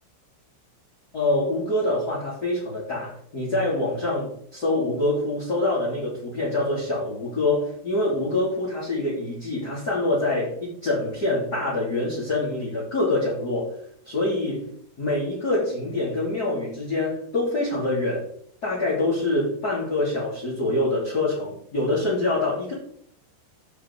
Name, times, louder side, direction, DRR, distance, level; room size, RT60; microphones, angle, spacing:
voice 1, 1.1-14.7 15.0-18.3 18.6-22.7, left 2 dB, 20° left, -8 dB, 3.3 m, -25 dB
15.5 x 7.0 x 3.7 m, 0.64 s
omnidirectional pair, 5.6 m